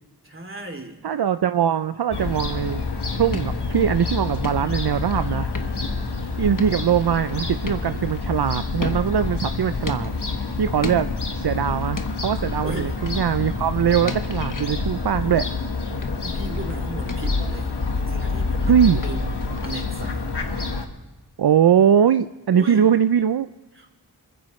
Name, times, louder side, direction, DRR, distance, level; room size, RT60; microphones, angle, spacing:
voice 1, 0.2-1.0 12.6-13.0 16.2-18.7 19.0-19.3 19.6-20.3 22.5-22.9 23.7-23.9, right 1 dB, 30° right, 3 dB, 2.8 m, -36 dB
voice 2, 1.0-2.8 3.1-5.5 6.4-10.1 10.6-11.1 11.4-15.5 18.7-19.0 21.4-23.5, right 8 dB, 70° right, 11 dB, 0.5 m, -21 dB
Fowl / Gull seagull, 2.1-20.9, left 3 dB, 85° left, 1.5 m, -27 dB
sound 1, 3.3-4.1 4.4-5.2 5.5-6.1 6.6-8.3 8.8-9.4 9.9-10.5 10.8-11.5 12.0-12.5 13.1-13.4 14.1-14.8 16.0-16.7 17.1-17.5 19.0-19.9, left 3 dB, 55° left, 1.1 m, -36 dB
26.0 x 14.5 x 3.1 m, 1.2 s
wide cardioid pair, 60°, 39 cm